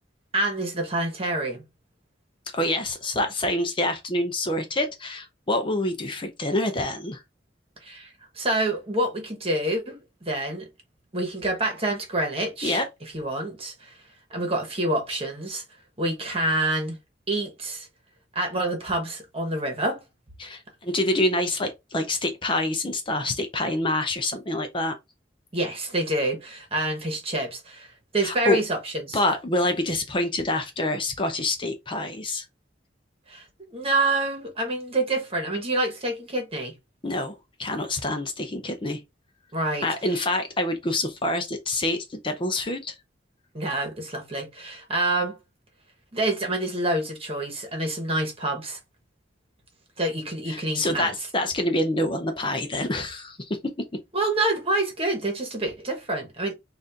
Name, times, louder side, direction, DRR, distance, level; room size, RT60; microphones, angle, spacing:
voice 1, 0.3-1.6 7.8-8.1 8.3-10.0 10.2-10.7 11.1-13.9 14.3-15.6 16.0-17.0 17.3-17.9 18.3-20.0 25.5-29.2 33.3-33.4 33.7-36.7 39.5-39.9 43.5-45.4 46.1-48.8 50.0-51.1 54.1-56.5, right 1 dB, 35° right, 1.3 m, -27 dB
voice 2, 2.5-7.2 12.6-12.9 20.4-25.0 28.2-28.6 29.1-32.4 37.0-39.0 39.8-42.9 50.5-53.9, left 1 dB, 30° left, 0.6 m, -26 dB
4.1 x 2.5 x 3.5 m
head